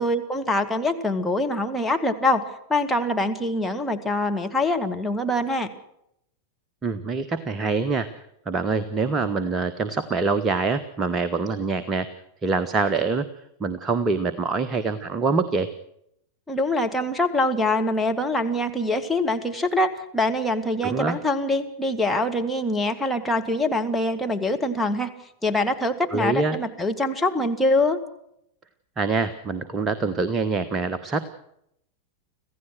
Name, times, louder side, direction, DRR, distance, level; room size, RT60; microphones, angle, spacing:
voice 1, 0.0-2.4 2.7-5.7 16.5-25.1 25.4-28.0, left 1 dB, 5° left, 3 dB, 2.1 m, -24 dB
voice 2, 6.8-8.1 8.5-12.1 12.4-13.3 13.6-15.7 20.8-21.2 26.1-26.6 29.0-31.3, right 4 dB, 20° right, 11 dB, 1.2 m, -25 dB
26.0 x 16.0 x 6.3 m, 0.76 s
figure-of-eight pair, 90°, 0 cm